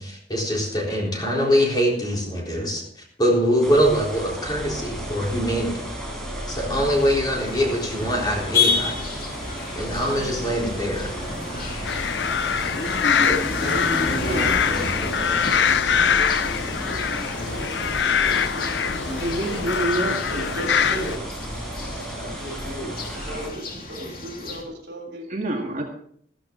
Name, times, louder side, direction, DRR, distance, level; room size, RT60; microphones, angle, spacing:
voice 1, 0.0-2.8 3.2-5.9 6.5-9.0 9.8-11.1, equal, 25° left, -2 dB, 4.0 m, -23 dB
sound 1, 3.6-23.5, equal, 5° left, 4.7 m, -34 dB
sound 2, 6.9-24.6, left 3 dB, 55° left, 2.6 m, -31 dB
sound 3, 11.9-21.2, left 7 dB, 85° left, 0.5 m, -23 dB
voice 2, 13.1-19.6 20.3-21.3 22.2-25.3, right 1 dB, 75° right, 3 dB, 3.3 m, -35 dB
voice 3, 19.2-20.2 25.3-25.8, right 1 dB, 45° right, 1 dB, 2.0 m, -26 dB
14.5 x 13.5 x 3.9 m, 0.63 s
head